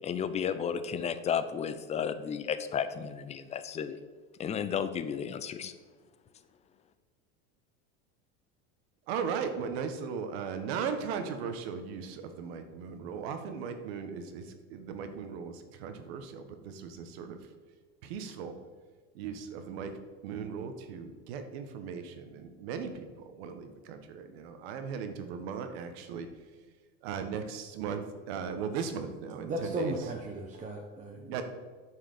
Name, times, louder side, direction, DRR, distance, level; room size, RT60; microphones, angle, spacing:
voice 1, 0.0-4.0 4.4-5.7, left 7 dB, 20° left, 11 dB, 0.6 m, -33 dB
voice 2, 9.1-17.4 18.0-18.5 19.1-19.9 20.2-26.3 27.0-30.0 31.3-31.4, right 6 dB, 75° right, 7 dB, 1.3 m, -37 dB
voice 3, 29.4-31.4, right 2 dB, 25° right, 0 dB, 1.0 m, -36 dB
9.4 x 4.8 x 6.6 m, 1.4 s
supercardioid pair, 125°, 31 cm